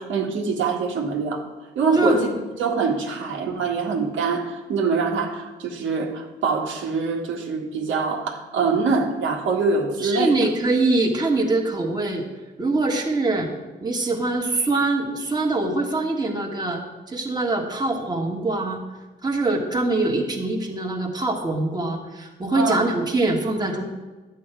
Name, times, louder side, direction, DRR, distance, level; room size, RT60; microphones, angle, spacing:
voice 1, 0.0-1.4 1.8-2.3 2.6-10.5 22.5-22.8, right 4 dB, 75° right, 0 dB, 1.8 m, -24 dB
voice 2, 10.0-12.3 12.6-13.5 13.8-16.8 17.1-18.8 19.2-23.8, right 2 dB, 20° right, 0 dB, 1.8 m, -23 dB
11.0 x 8.5 x 4.7 m, 1.2 s
cardioid pair, 90°, 20 cm